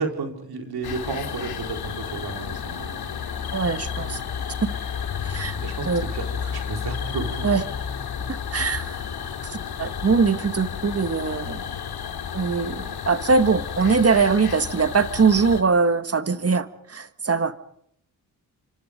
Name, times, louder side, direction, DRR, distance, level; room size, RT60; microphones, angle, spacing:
voice 1, 0.0-3.1 5.6-7.5, right 4 dB, 70° right, 3 dB, 4.5 m, -32 dB
sound 1, 0.8-15.6, left 7 dB, 75° left, 2.5 m, -32 dB
voice 2, 3.5-4.2 5.2-5.6 5.8-6.0 7.4-7.6 8.3-9.0 9.5-11.6 12.3-17.5, right 4 dB, 40° right, 11 dB, 1.7 m, -22 dB
26.5 x 25.5 x 5.2 m, 0.70 s
supercardioid pair, 50°, 39 cm